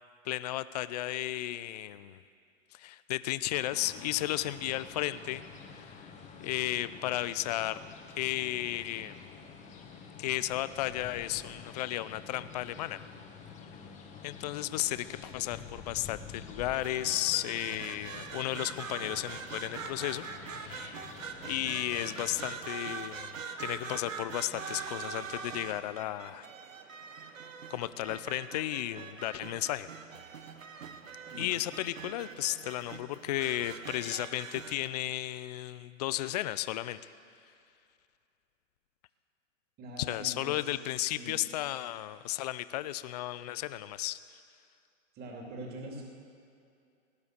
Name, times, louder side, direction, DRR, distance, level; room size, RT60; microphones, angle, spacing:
voice 1, 0.2-2.2 2.7-5.4 5.7-6.1 6.4-9.2 10.2-13.0 14.2-21.1 21.4-26.5 27.7-29.9 31.3-37.1 40.0-44.2, left 15 dB, 35° left, 15 dB, 0.4 m, -34 dB
sound 1, 3.5-22.6, left 6 dB, 20° left, 1.4 m, -49 dB
sound 2, 16.7-34.9, right 5 dB, 85° right, 1.3 m, -43 dB
voice 2, 31.2-31.5 39.8-40.7 41.0-41.4 45.1-46.0, right 1 dB, 25° right, -1 dB, 2.9 m, -44 dB
18.0 x 11.0 x 6.7 m, 2.4 s
hypercardioid pair, 130°, 39 cm